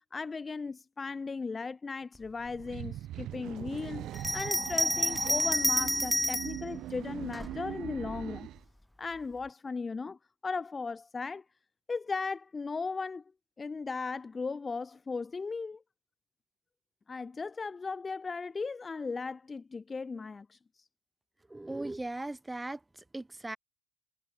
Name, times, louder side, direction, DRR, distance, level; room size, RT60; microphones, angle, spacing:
voice 1, 0.1-8.5 9.0-11.4 11.9-13.2 13.6-15.8 17.1-20.9, left 4 dB, 25° left, 2.0 m, -37 dB
sound 1, 2.4-8.6, right 13 dB, 55° right, 0.7 m, -41 dB
Bell, 4.1-6.6 7.3-8.2, left 1 dB, 5° left, 1.2 m, -29 dB
voice 2, 21.5-23.6, right 2 dB, 10° right, 4.5 m, -38 dB
supercardioid pair, 85°, 0 cm